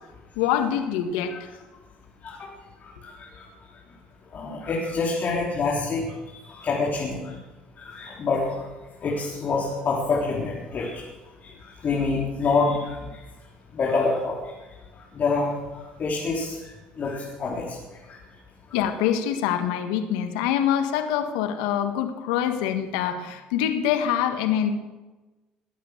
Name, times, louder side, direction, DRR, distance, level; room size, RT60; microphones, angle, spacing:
voice 1, 0.4-1.5 18.7-24.7, left 9 dB, 80° left, 7 dB, 1.6 m, -25 dB
voice 2, 4.3-6.1 6.5-7.3 7.8-8.5 9.0-11.0 11.4-11.5 11.8-13.0 13.7-14.4 15.1-15.5 16.0-16.6 17.0-17.8, left 4 dB, 45° left, -3 dB, 3.9 m, -26 dB
21.5 x 8.9 x 6.7 m, 1.2 s
hypercardioid pair, 65°, 4 cm